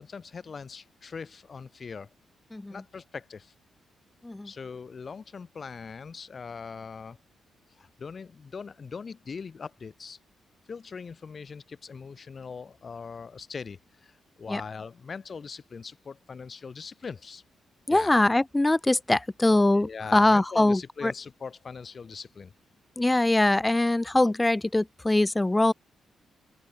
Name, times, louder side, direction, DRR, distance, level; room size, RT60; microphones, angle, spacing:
voice 1, 0.0-2.1 2.7-3.5 4.4-7.2 7.8-10.2 10.7-17.4 17.9-18.2 19.8-22.5, left 5 dB, 50° left, 1.0 m, -41 dB
voice 2, 2.5-2.8 4.2-4.5 14.5-14.6 17.9-21.1 23.0-25.7, left 2 dB, 20° left, 0.4 m, -23 dB
open air
supercardioid pair, 50°, 0 cm